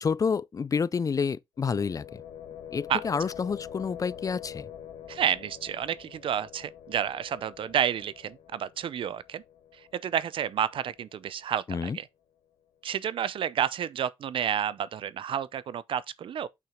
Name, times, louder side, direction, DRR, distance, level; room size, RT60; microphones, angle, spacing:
voice 1, 0.0-2.1 2.7-4.7 11.7-12.0, left 5 dB, 40° left, 0.4 m, -29 dB
sound 1, 1.6-11.4, left 9 dB, 90° left, 1.0 m, -46 dB
voice 2, 5.1-9.4 9.9-12.1 12.8-16.5, right 9 dB, 65° right, 0.6 m, -30 dB
5.9 x 5.7 x 3.6 m
supercardioid pair, 55°, 9 cm